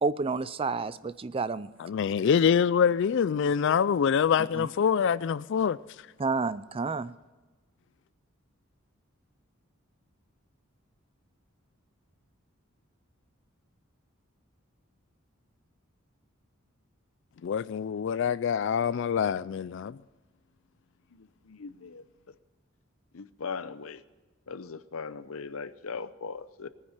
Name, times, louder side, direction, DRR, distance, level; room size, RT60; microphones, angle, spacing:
voice 1, 0.0-1.7 4.5-4.7 6.2-7.1, right 4 dB, 25° right, 0.4 m, -30 dB
voice 2, 1.8-5.8 17.4-20.0, left 7 dB, 60° left, 0.4 m, -25 dB
voice 3, 21.1-22.0 23.1-24.0 24.5-26.7, left 5 dB, 80° left, 0.7 m, -39 dB
19.0 x 9.7 x 6.6 m
head